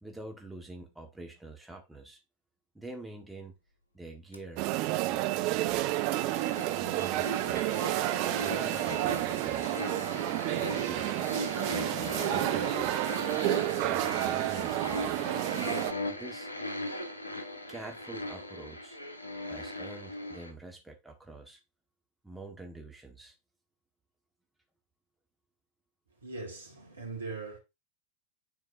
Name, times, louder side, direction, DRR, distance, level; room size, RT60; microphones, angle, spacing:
voice 1, 0.0-2.2 2.7-3.5 3.9-4.7 5.1-5.8 6.8-7.8 8.4-9.8 10.6-11.1 11.7-13.0 13.7-15.2 16.1-16.5 17.7-19.0 19.4-21.6 22.2-23.3, right 2 dB, 5° right, 1.5 m, -46 dB
sound 1, 4.3-4.4 5.5-20.5, left 1 dB, 80° left, 1.1 m, -39 dB
sound 2, 4.6-15.9, right 16 dB, 45° right, 0.5 m, -30 dB
voice 2, 26.2-27.6, right 3 dB, 75° right, 2.4 m, -40 dB
9.6 x 4.4 x 2.7 m
figure-of-eight pair, 90°, 0 cm